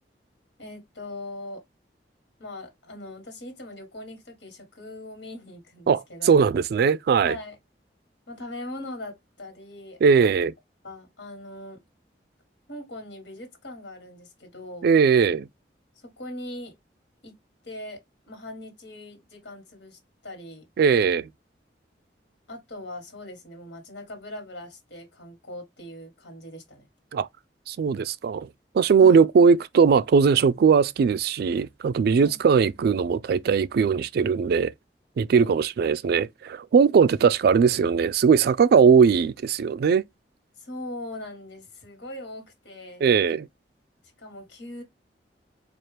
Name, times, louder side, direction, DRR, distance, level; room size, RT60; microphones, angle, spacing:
voice 1, 0.6-1.6 2.4-6.3 7.2-7.6 8.3-10.3 10.8-11.8 12.7-14.9 16.0-16.7 17.2-17.3 17.6-18.0 18.3-20.6 22.5-26.9 29.0-29.2 32.2-32.4 35.3-35.5 40.6-43.0 44.2-44.8, left 1 dB, 85° left, 1.5 m, -40 dB
voice 2, 5.9-7.4 10.0-10.5 14.8-15.5 20.8-21.3 27.1-27.3 27.7-28.5 28.7-34.7 35.2-40.0 43.0-43.5, right 6 dB, 60° right, 0.3 m, -19 dB
4.3 x 2.4 x 3.2 m
head